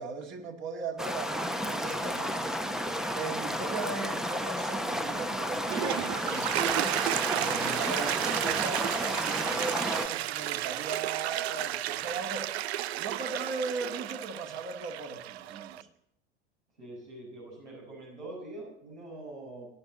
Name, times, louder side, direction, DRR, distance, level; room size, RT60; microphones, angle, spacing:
voice 1, 0.0-2.5 3.1-6.7 7.3-12.5 13.0-15.9, right 4 dB, 35° right, 2 dB, 2.3 m, -38 dB
sound 1, 1.0-10.1, equal, ahead, 0.9 m, -32 dB
Toilet flush, 5.6-15.8, right 14 dB, 65° right, 0.5 m, -32 dB
voice 2, 16.8-19.7, right 2 dB, 85° right, -3 dB, 6.4 m, -44 dB
18.5 x 11.0 x 4.1 m, 0.75 s
figure-of-eight pair, 85°, 34 cm